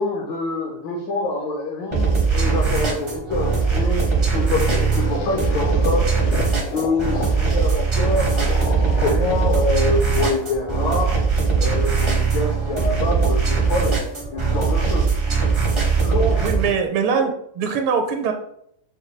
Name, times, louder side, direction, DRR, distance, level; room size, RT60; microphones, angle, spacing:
voice 1, 0.0-6.1 6.7-11.2 11.6-14.0 14.3-15.1 16.0-16.4, left 2 dB, 70° left, -1 dB, 1.3 m, -25 dB
sound 1, 1.9-16.7, right 5 dB, 45° right, 0.4 m, -20 dB
sound 2, 4.2-11.1, left 6 dB, 90° left, 1.5 m, -33 dB
voice 2, 16.4-18.3, right 6 dB, 80° right, 4 dB, 1.4 m, -22 dB
5.7 x 2.2 x 3.1 m, 0.71 s
omnidirectional pair, 2.4 m